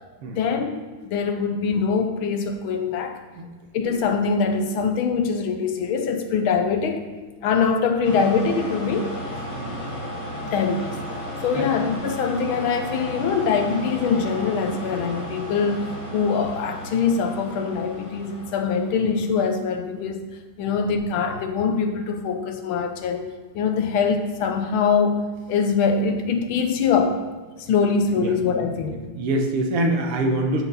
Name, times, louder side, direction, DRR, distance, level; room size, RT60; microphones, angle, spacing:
voice 1, 0.3-3.2 3.7-7.1 7.4-9.2 10.4-11.0 11.4-20.3 20.6-25.2 25.5-27.2 27.6-29.0, left 5 dB, 70° left, 6 dB, 1.5 m, -23 dB
sound 1, 8.0-19.3, equal, 40° left, 2.5 m, -34 dB
voice 2, 29.2-30.6, right 1 dB, 85° right, 3 dB, 2.0 m, -24 dB
13.0 x 4.4 x 4.0 m, 1.4 s
omnidirectional pair, 2.4 m